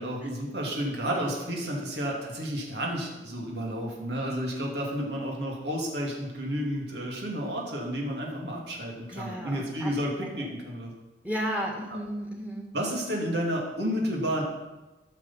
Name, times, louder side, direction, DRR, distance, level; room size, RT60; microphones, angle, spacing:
voice 1, 0.0-10.9 12.7-14.4, equal, 70° right, -1 dB, 2.8 m, -31 dB
voice 2, 9.1-9.9 10.4-10.5 11.2-12.7, equal, 10° right, 0 dB, 2.1 m, -34 dB
15.0 x 6.8 x 5.8 m, 1.1 s
head